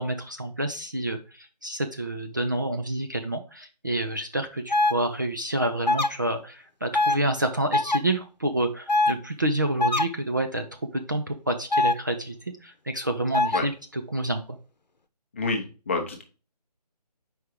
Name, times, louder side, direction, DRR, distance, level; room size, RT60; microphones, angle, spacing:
voice 1, 0.0-10.6 10.9-12.4 12.6-14.6, right 1 dB, 30° right, 5 dB, 0.4 m, -28 dB
sound 1, 4.7-4.9 5.9-6.1 6.9-7.2 7.7-8.0 8.9-9.1 9.8-10.0 11.7-11.9 13.3-13.6, left 2 dB, 85° left, 0.8 m, -22 dB
voice 2, 15.3-16.2, left 3 dB, 20° left, 3 dB, 0.7 m, -28 dB
4.7 x 4.6 x 4.9 m, 0.34 s
figure-of-eight pair, 155°, 21 cm